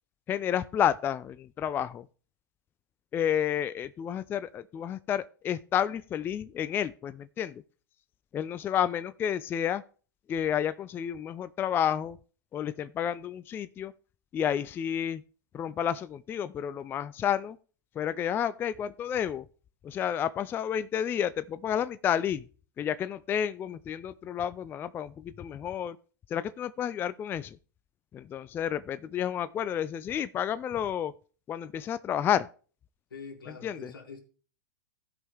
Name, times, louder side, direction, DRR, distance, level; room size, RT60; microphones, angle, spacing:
voice 1, 0.3-2.1 3.1-7.6 8.3-9.8 10.3-12.2 12.5-13.9 14.3-15.2 15.5-17.6 18.0-19.5 19.8-22.5 22.8-26.0 26.3-27.6 28.1-31.1 31.5-32.5 33.6-33.9, left 9 dB, 20° left, 0.3 m, -30 dB
voice 2, 33.1-34.2, left 5 dB, 80° left, 2.4 m, -44 dB
16.0 x 5.4 x 3.4 m
hypercardioid pair, 110°, 11 cm